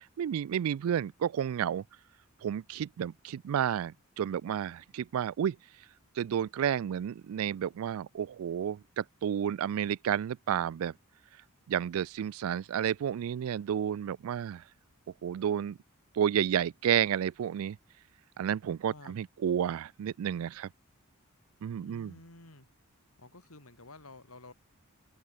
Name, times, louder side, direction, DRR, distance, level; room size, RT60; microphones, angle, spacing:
voice 1, 0.2-1.8 2.4-5.6 6.2-10.9 11.7-14.6 15.2-15.8 16.1-17.8 18.4-20.7 21.6-22.1, right 9 dB, 70° right, 0.3 m, -31 dB
voice 2, 18.9-19.2 21.7-22.7 23.2-24.5, left 2 dB, 80° left, 4.4 m, -51 dB
open air
head